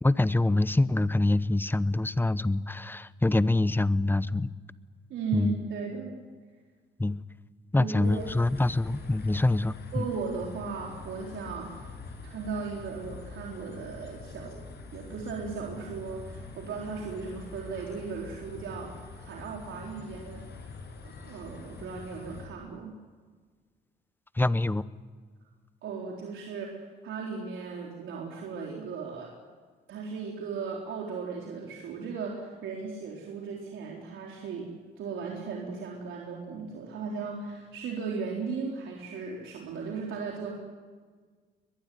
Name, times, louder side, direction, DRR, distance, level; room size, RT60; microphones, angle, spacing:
voice 1, 0.0-4.5 5.3-5.5 7.0-7.2 7.7-10.1 24.4-24.8, left 2 dB, 10° left, 16 dB, 0.9 m, -25 dB
voice 2, 5.1-6.2 7.8-8.3 9.9-11.9 12.2-14.6 14.9-20.5 21.0-22.9 25.8-29.3 29.9-40.5, right 5 dB, 80° right, -1 dB, 4.0 m, -36 dB
sound 1, 8.0-22.5, left 4 dB, 55° left, 6.6 m, -45 dB
22.0 x 22.0 x 9.4 m, 1.5 s
cardioid pair, 90°, 20 cm